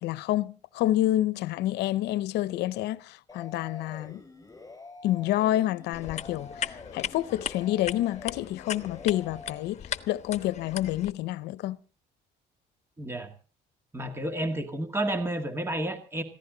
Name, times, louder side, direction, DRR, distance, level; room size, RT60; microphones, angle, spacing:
voice 1, 0.0-4.2 5.0-9.8 10.1-11.8, left 14 dB, 85° left, 0.8 m, -28 dB
sound 1, 3.3-9.6, left 3 dB, 20° left, 6.5 m, -47 dB
sound 2, 5.9-11.1, left 8 dB, 40° left, 1.2 m, -38 dB
voice 2, 13.0-13.3 13.9-16.2, right 1 dB, 15° right, 2.0 m, -31 dB
21.5 x 15.5 x 4.0 m
cardioid pair, 110°, 17 cm